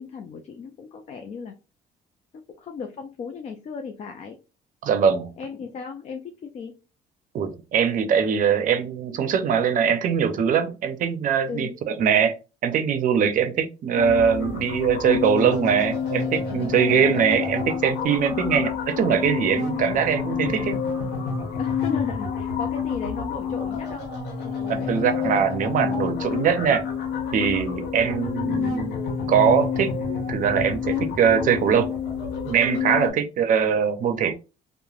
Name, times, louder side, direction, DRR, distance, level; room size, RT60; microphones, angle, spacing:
voice 1, 0.0-1.6 2.5-4.4 5.4-6.8 11.5-11.8 16.7-17.2 18.3-18.7 21.6-24.1 24.4-25.0 32.9-33.2, left 5 dB, 40° left, 0.4 m, -36 dB
voice 2, 4.8-5.3 7.3-12.3 12.6-20.8 24.7-26.9 27.3-29.0 29.3-29.9 30.3-31.9 32.4-34.3, right 7 dB, 50° right, 0.5 m, -22 dB
sound 1, 13.9-33.1, left 6 dB, 80° left, 1.1 m, -28 dB
3.0 x 2.1 x 2.3 m
cardioid pair, 110°, 17 cm